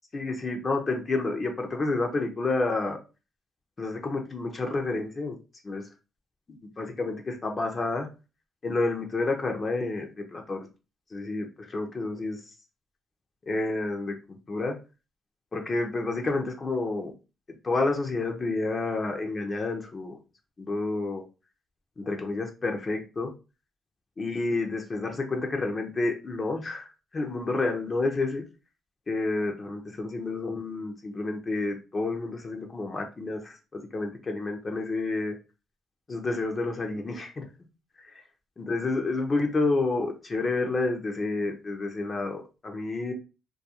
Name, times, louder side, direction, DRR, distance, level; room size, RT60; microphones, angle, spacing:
voice 1, 0.1-3.0 3.8-5.4 5.6-5.8 6.8-8.1 8.6-10.7 11.1-12.4 13.5-14.1 14.5-14.8 15.5-17.1 17.6-20.2 20.6-21.2 22.0-23.3 24.2-26.9 27.1-28.4 29.1-35.4 36.1-37.5 38.0-38.1 38.6-43.1, left 3 dB, 35° left, 2 dB, 0.5 m, -29 dB
2.3 x 2.3 x 2.8 m, 0.31 s
cardioid pair, 90°, 0 cm